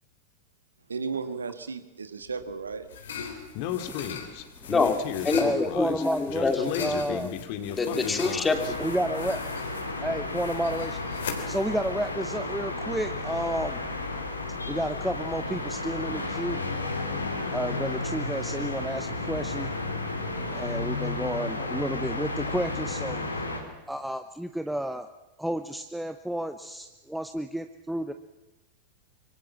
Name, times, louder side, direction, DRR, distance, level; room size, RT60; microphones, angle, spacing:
voice 1, 0.9-2.9, right 5 dB, 75° right, 11 dB, 1.6 m, -34 dB
sound 1, 2.3-12.9, left 6 dB, 65° left, 3.8 m, -40 dB
Speech, 3.5-8.7, left 10 dB, 45° left, 2.4 m, -34 dB
voice 2, 3.8-4.1 4.6-4.7 5.4-7.3 8.8-9.4 10.0-11.0 11.5-13.8 14.7-16.6 17.5-19.7 20.5-23.2 23.9-25.1 25.4-28.1, right 1 dB, ahead, 8 dB, 1.0 m, -31 dB
voice 3, 5.2-6.7 7.1-7.2 7.8-8.8, left 4 dB, 15° left, 7 dB, 2.7 m, -26 dB
sound 2, 8.5-23.6, left 2 dB, 80° left, 3.7 m, -32 dB
25.5 x 24.0 x 7.4 m, 1.1 s
figure-of-eight pair, 90°, 0 cm